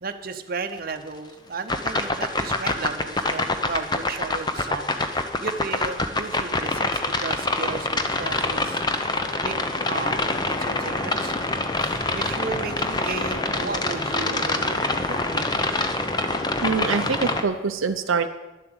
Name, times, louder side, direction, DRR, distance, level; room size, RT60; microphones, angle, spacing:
voice 1, 0.0-9.6 9.8-11.4 11.8-15.5, right 4 dB, 45° right, 7 dB, 0.8 m, -34 dB
sound 1, 1.7-17.4, left 2 dB, 20° left, 0.8 m, -25 dB
voice 2, 16.6-18.3, right 5 dB, 75° right, 7 dB, 0.6 m, -24 dB
11.5 x 7.7 x 7.9 m, 1.1 s
head